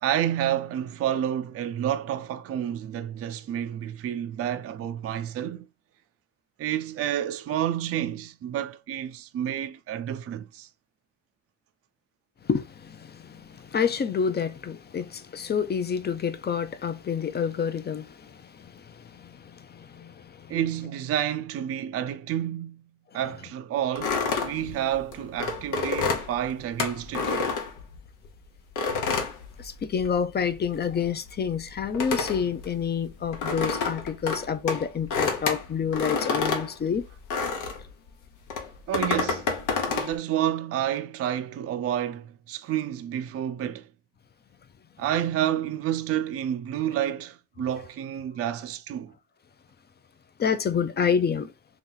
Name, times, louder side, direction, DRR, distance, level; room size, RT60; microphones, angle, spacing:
voice 1, 0.0-5.7 6.6-10.7 20.5-22.8 23.1-27.4 38.9-39.5 39.9-43.9 45.0-49.1, right 10 dB, 50° right, 0.4 m, -29 dB
voice 2, 12.4-20.5 29.6-37.0 50.4-51.5, left 7 dB, 35° left, 0.5 m, -28 dB
sound 1, 24.0-28.3 28.8-30.2 30.5-37.9 38.5-40.1, left 4 dB, 90° left, 1.0 m, -29 dB
3.1 x 2.9 x 3.8 m
cardioid pair, 90°, 30 cm